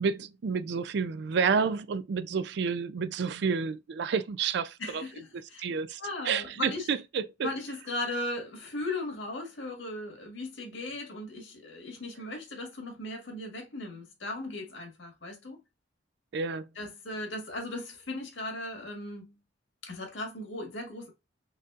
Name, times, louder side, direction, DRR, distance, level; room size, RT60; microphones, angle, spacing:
voice 1, 0.0-5.0 5.6-6.0 6.3-7.5 16.3-16.6, right 5 dB, 65° right, 0.4 m, -30 dB
voice 2, 4.8-5.7 6.0-6.9 7.4-15.6 16.8-19.4 19.8-21.1, left 2 dB, 75° left, 1.8 m, -37 dB
4.1 x 3.7 x 2.4 m
head